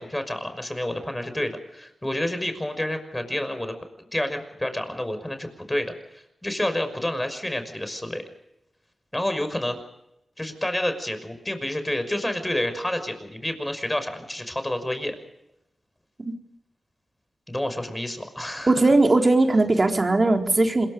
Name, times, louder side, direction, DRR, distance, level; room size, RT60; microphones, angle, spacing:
voice 1, 0.0-3.7 4.1-8.2 9.1-9.8 10.4-15.2 17.5-18.7, left 1 dB, 15° left, 9 dB, 5.9 m, -29 dB
voice 2, 18.7-20.9, right 2 dB, 40° right, 3 dB, 4.0 m, -19 dB
27.0 x 22.0 x 5.3 m, 0.84 s
cardioid pair, 50°, 0 cm